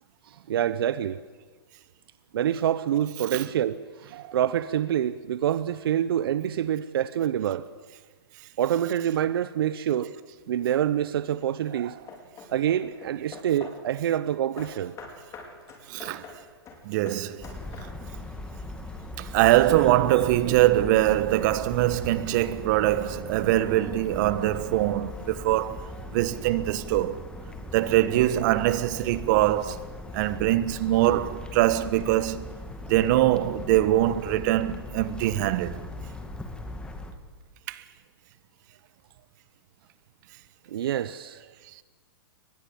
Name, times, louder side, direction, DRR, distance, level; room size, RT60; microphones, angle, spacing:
voice 1, 0.3-1.2 2.3-7.6 8.6-10.1 10.5-12.0 12.5-15.0 40.7-41.4, right 10 dB, 65° right, 0.9 m, -26 dB
Hammer / Wood, 10.4-10.8 11.5-13.9 14.6-18.2, left 4 dB, 25° left, 5.0 m, -46 dB
voice 2, 15.9-16.3 16.8-17.5 19.2-25.8 26.1-27.2 27.7-29.8 30.1-32.5 32.9-35.8 37.7-37.8, right 15 dB, 45° right, 1.4 m, -23 dB
sound 1, 17.4-37.1, left 2 dB, 5° left, 2.3 m, -39 dB
23.5 x 20.0 x 8.7 m
hypercardioid pair, 130°, 13 cm